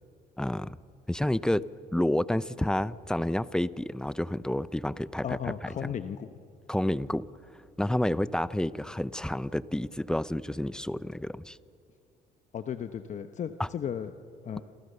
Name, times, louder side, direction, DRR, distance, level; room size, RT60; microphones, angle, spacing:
voice 1, 0.4-0.8 1.1-1.6 1.9-5.2 5.8-5.9 6.7-7.2 7.8-11.6, left 1 dB, 5° left, 17 dB, 0.6 m, -29 dB
voice 2, 5.2-6.3 12.5-14.1 14.4-14.6, left 8 dB, 45° left, 9 dB, 1.0 m, -35 dB
28.0 x 28.0 x 6.8 m, 2.6 s
cardioid pair, 110°, 17 cm